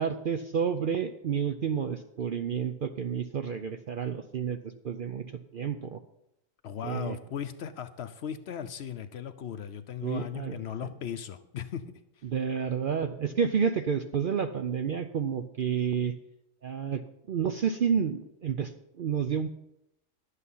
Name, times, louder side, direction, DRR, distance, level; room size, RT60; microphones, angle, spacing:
voice 1, 0.0-6.0 6.8-7.2 10.0-10.6 12.2-16.1 16.6-19.5, right 7 dB, 60° right, 8 dB, 0.6 m, -30 dB
voice 2, 6.6-11.8, left 9 dB, 60° left, 10 dB, 0.8 m, -37 dB
11.5 x 8.3 x 5.5 m, 0.85 s
omnidirectional pair, 1.4 m